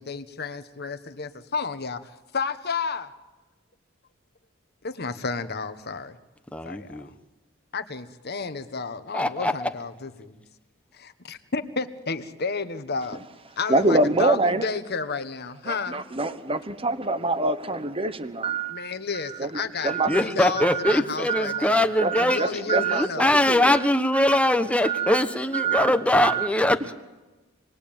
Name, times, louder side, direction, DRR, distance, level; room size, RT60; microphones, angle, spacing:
voice 1, 0.0-3.1 4.8-6.2 6.6-7.1 7.7-10.4 10.9-13.2 13.6-16.0 18.7-21.8 22.2-23.3, left 4 dB, 50° left, 10 dB, 1.3 m, -32 dB
voice 2, 6.5-7.1 9.1-9.7 19.8-26.9, left 1 dB, 5° left, 8 dB, 1.1 m, -22 dB
voice 3, 13.7-14.6 15.7-18.9 19.3-20.2 20.6-20.9 21.3-21.7 22.0-23.8 24.3-24.4 24.8-25.2 25.5-25.9 26.2-26.5, right 3 dB, 25° right, 11 dB, 1.1 m, -25 dB
27.5 x 20.5 x 8.9 m, 1.1 s
head